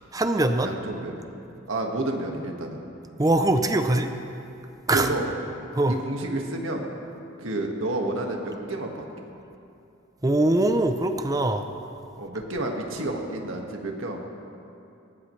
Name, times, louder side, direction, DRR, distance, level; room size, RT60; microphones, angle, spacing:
voice 1, 0.1-0.7 3.2-4.1 4.9-5.1 5.7-5.9 10.2-11.7, right 2 dB, 15° right, 7 dB, 0.6 m, -22 dB
voice 2, 0.6-1.2 1.7-2.8 4.9-5.3 6.0-6.8 7.4-8.9 12.2-14.2, right 2 dB, 70° right, 1 dB, 1.8 m, -30 dB
19.5 x 17.5 x 3.3 m, 2.7 s
head